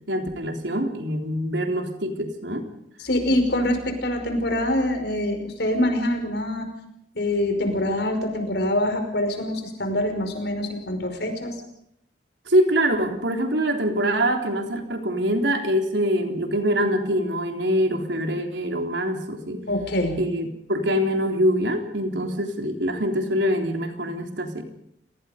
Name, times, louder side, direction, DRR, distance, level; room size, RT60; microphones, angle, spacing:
voice 1, 0.1-2.6 12.5-19.6 20.2-24.6, equal, 80° right, 4 dB, 3.7 m, -24 dB
voice 2, 3.0-6.7 7.2-11.5 19.7-20.2, left 1 dB, 65° left, 6 dB, 5.3 m, -25 dB
29.5 x 19.0 x 5.2 m, 0.77 s
head